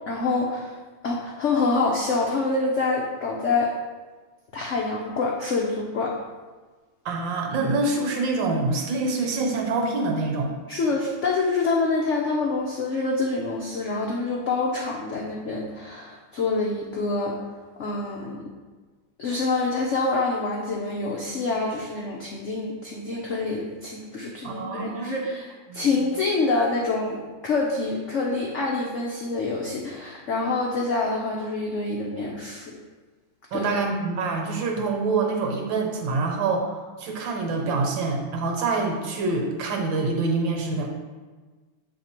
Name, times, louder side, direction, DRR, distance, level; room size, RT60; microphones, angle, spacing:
voice 1, 0.1-0.8 1.0-3.7 4.5-6.2 10.7-17.4 17.8-18.4 19.2-32.7 33.5-33.7, left 3 dB, 90° left, -2 dB, 0.6 m, -26 dB
voice 2, 7.0-10.6 24.4-25.2 25.7-25.9 33.5-40.9, right 3 dB, 70° right, 2 dB, 1.6 m, -26 dB
7.7 x 3.3 x 4.3 m, 1.3 s
omnidirectional pair, 2.2 m